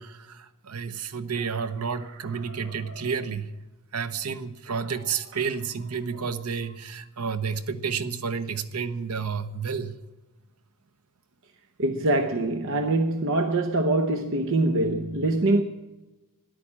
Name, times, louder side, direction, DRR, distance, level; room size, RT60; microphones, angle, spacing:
voice 1, 0.0-3.5 3.9-10.0, right 6 dB, 90° right, 0.9 m, -31 dB
voice 2, 2.5-2.9 4.8-4.9 11.8-15.6, right 2 dB, 60° right, 0.8 m, -24 dB
13.5 x 11.5 x 8.6 m
head